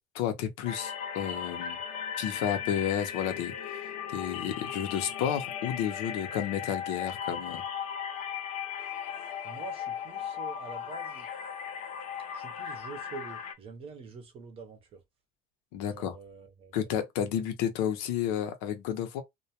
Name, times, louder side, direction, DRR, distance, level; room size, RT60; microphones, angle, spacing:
voice 1, 0.0-1.8 2.2-7.6 15.7-16.1 16.7-19.2, left 9 dB, 80° left, 0.6 m, -32 dB
sound 1, 0.7-13.5, left 8 dB, 40° left, 0.4 m, -37 dB
voice 2, 9.4-11.3 12.3-15.0 15.8-16.8, right 5 dB, 30° right, 0.6 m, -46 dB
2.2 x 2.2 x 2.7 m
cardioid pair, 170°, 18 cm